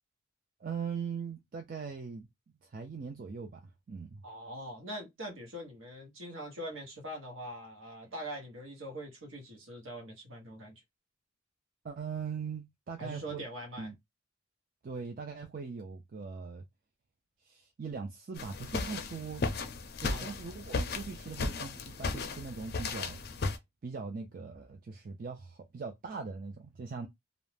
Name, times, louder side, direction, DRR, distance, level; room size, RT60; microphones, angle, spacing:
voice 1, 0.6-2.3 2.6-4.2 11.8-13.4 13.8-14.0 14.8-16.6 17.4-19.5 20.0-23.2 23.8-27.1, right 5 dB, 40° right, 0.4 m, -40 dB
voice 2, 4.2-10.8 13.0-13.9 20.1-20.4, equal, 70° right, 1.1 m, -43 dB
sound 1, 18.4-23.6, left 3 dB, 50° left, 0.5 m, -35 dB
2.5 x 2.0 x 3.2 m
head